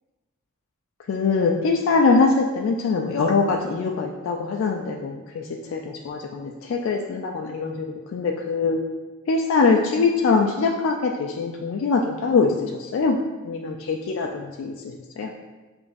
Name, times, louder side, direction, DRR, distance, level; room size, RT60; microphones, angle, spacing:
voice 1, 1.1-5.4 5.7-8.8 9.3-13.2 13.4-15.3, left 4 dB, 65° left, 1 dB, 0.3 m, -23 dB
6.9 x 2.5 x 2.5 m, 1.2 s
head